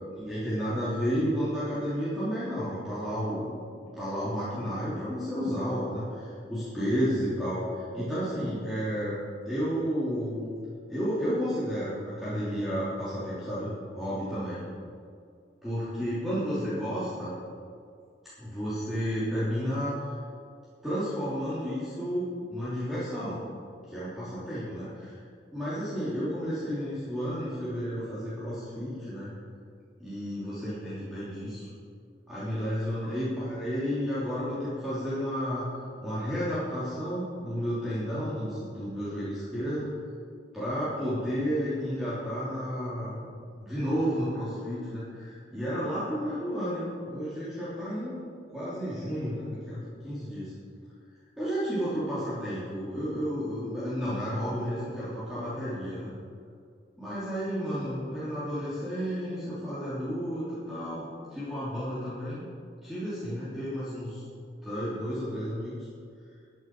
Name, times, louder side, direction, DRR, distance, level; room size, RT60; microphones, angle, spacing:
voice 1, 0.1-3.5 3.8-9.2 9.4-10.4 10.9-14.6 15.6-17.3 18.4-20.0 20.8-23.4 23.9-25.2 25.5-29.3 30.0-31.7 32.3-35.7 36.0-39.9 40.5-43.3 43.6-48.2 48.5-50.5 51.4-56.1 57.0-62.4 62.8-64.2 64.6-65.7, equal, ahead, -13 dB, 3.2 m, -32 dB
14.0 x 9.2 x 4.7 m, 2.3 s
head